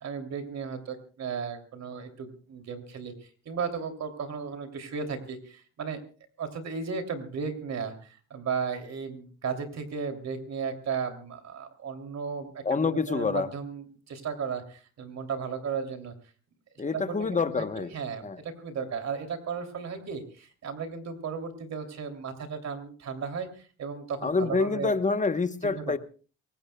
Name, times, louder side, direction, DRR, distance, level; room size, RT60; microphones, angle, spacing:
voice 1, 0.0-6.0 6.4-16.1 16.9-24.9 25.6-25.9, right 6 dB, 60° right, 6 dB, 3.0 m, -35 dB
voice 2, 12.6-13.5 16.8-17.9 18.2-18.4 24.2-26.0, left 4 dB, 25° left, 11 dB, 1.0 m, -27 dB
24.0 x 19.0 x 2.3 m, 0.38 s
cardioid pair, 90°, 30 cm